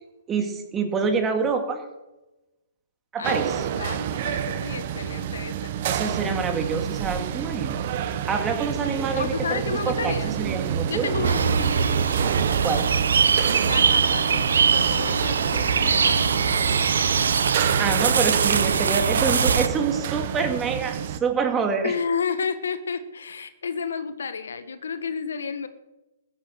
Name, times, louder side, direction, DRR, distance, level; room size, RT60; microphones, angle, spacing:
voice 1, 0.3-1.8 3.1-3.6 5.8-7.9 8.2-11.1 12.6-12.9 17.8-21.9, right 5 dB, 15° right, 4 dB, 2.3 m, -26 dB
voice 2, 3.2-5.7 9.1-10.3 10.8-12.0 13.6-16.7 21.8-25.7, left 5 dB, 75° left, 11 dB, 1.4 m, -31 dB
sound 1, 3.2-21.2, right 8 dB, 45° right, 1.1 m, -28 dB
sound 2, 11.2-19.7, right 6 dB, 70° right, 1.0 m, -22 dB
15.0 x 10.0 x 6.5 m, 1.0 s
hypercardioid pair, 135°, 0 cm